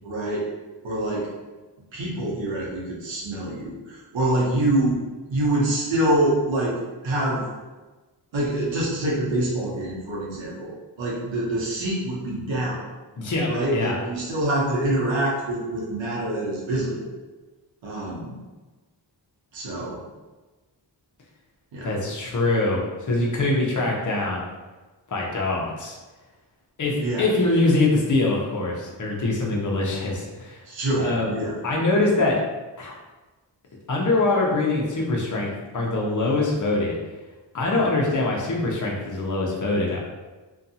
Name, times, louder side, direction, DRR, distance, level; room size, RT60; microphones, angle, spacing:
voice 1, 0.0-0.5 0.8-1.3 1.9-5.0 5.3-6.8 7.0-7.4 8.3-12.9 13.5-17.1 17.8-18.4 19.5-20.0 21.7-21.9 27.0-27.3 30.7-31.6, right 1 dB, 90° right, -4 dB, 0.9 m, -25 dB
voice 2, 13.2-14.0 21.8-22.8 23.1-24.4 25.1-25.9 26.8-30.6 31.0-31.3 31.6-32.4 32.8-32.9 33.9-36.9 37.5-40.1, left 2 dB, 45° left, -2 dB, 0.7 m, -23 dB
2.6 x 2.3 x 2.7 m, 1.2 s
wide cardioid pair, 100°, 44 cm